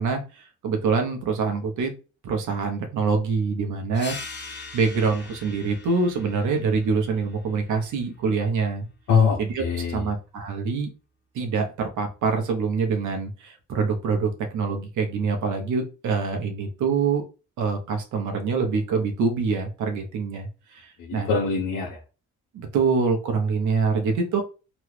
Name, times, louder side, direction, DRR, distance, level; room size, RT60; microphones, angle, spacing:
voice 1, 0.0-1.9 2.2-4.2 4.7-8.9 9.4-9.6 9.9-10.9 11.3-17.2 17.6-21.3 22.5-24.4, right 5 dB, 75° right, 4 dB, 0.9 m, -25 dB
sound 1, 3.9-9.1, left 3 dB, 35° left, 0.9 m, -42 dB
voice 2, 9.1-10.1 21.0-22.0, left 5 dB, 85° left, -4 dB, 0.9 m, -23 dB
3.1 x 2.4 x 3.2 m, 0.32 s
cardioid pair, 90°, 30 cm